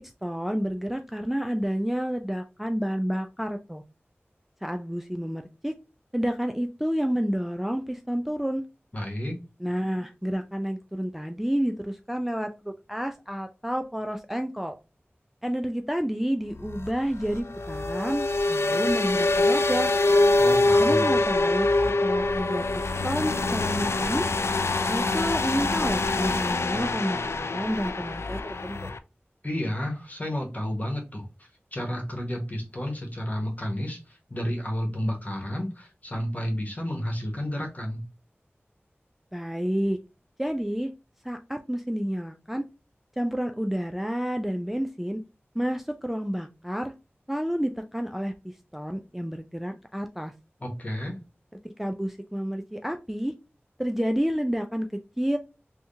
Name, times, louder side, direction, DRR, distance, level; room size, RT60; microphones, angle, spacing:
voice 1, 0.2-3.8 4.6-5.7 6.1-8.6 9.6-14.8 15.4-19.9 20.8-24.4 24.9-28.9 39.3-40.0 40.4-40.9 41.2-42.6 43.2-45.2 45.5-46.9 47.3-50.3 51.6-53.3 53.8-55.4, equal, 5° right, 5 dB, 0.4 m, -30 dB
voice 2, 8.9-9.4 20.4-21.2 29.4-38.0 50.6-51.2, equal, 40° left, 0 dB, 1.3 m, -31 dB
sound 1, 16.6-29.0, left 2 dB, 80° left, 0.3 m, -24 dB
3.5 x 2.9 x 2.6 m, 0.28 s
wide cardioid pair, 60°, 4 cm